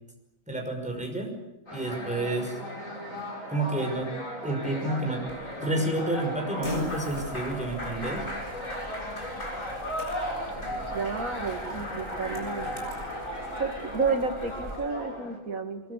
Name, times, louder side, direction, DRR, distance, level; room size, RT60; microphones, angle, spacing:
voice 1, 0.5-1.3 1.7-2.6 3.5-4.1 4.4-5.2 5.6-8.2, right 1 dB, 5° right, 2 dB, 5.6 m, -30 dB
sound 1, 1.7-15.4, equal, 70° left, 6.9 m, -36 dB
Fart, 5.3-13.0, left 1 dB, 55° left, 7.9 m, -42 dB
sound 2, 6.6-14.8, right 1 dB, 45° right, 6.0 m, -46 dB
voice 2, 10.9-12.7 13.6-15.9, right 4 dB, 85° right, 6 dB, 2.7 m, -31 dB
24.0 x 23.5 x 8.4 m, 0.89 s
omnidirectional pair, 1.4 m